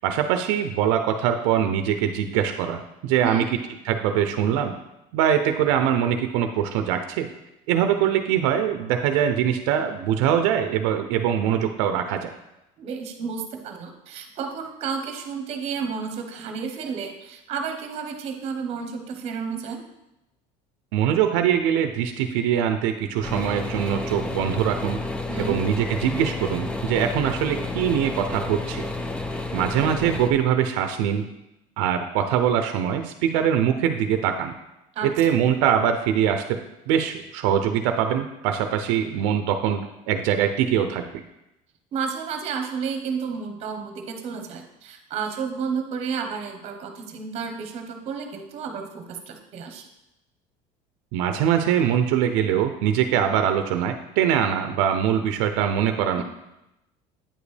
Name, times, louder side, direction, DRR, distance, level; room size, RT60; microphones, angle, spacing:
voice 1, 0.0-3.5 3.9-4.7 5.1-7.3 7.7-12.3 20.9-25.0 25.4-28.9 29.5-31.3 31.8-34.5 35.0-36.6 36.9-39.8 40.1-41.2 51.1-56.2, right 9 dB, 85° right, 7 dB, 0.6 m, -23 dB
voice 2, 12.8-19.8 25.3-25.6 34.9-35.1 41.9-49.9 56.1-56.2, right 6 dB, 40° right, 5 dB, 1.0 m, -31 dB
sound 1, 23.2-30.3, left 2 dB, 5° left, 0.4 m, -31 dB
8.8 x 5.1 x 3.3 m, 0.91 s
cardioid pair, 150°, 16 cm